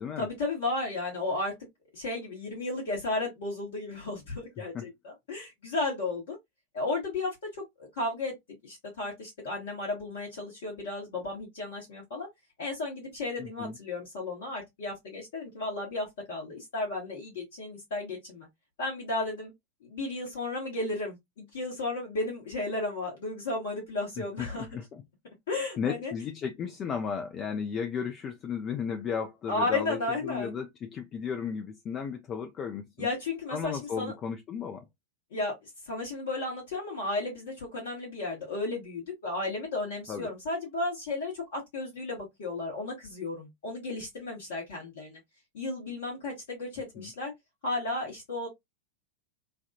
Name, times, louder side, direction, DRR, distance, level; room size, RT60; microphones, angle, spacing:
voice 1, 0.2-1.5 1.9-6.4 6.7-7.3 7.9-8.3 8.6-12.3 12.6-18.5 18.8-19.5 19.9-24.8 25.5-26.1 29.5-30.5 33.0-34.1 35.3-35.5 35.9-45.2 45.5-47.3 47.6-48.5, left 2 dB, 60° left, 1.3 m, -34 dB
voice 2, 13.4-13.8 24.2-25.0 25.8-33.1 33.5-34.8 40.1-40.3 47.0-47.1, left 6 dB, 30° left, 0.5 m, -34 dB
3.3 x 2.3 x 2.6 m
figure-of-eight pair, 90°, 0 cm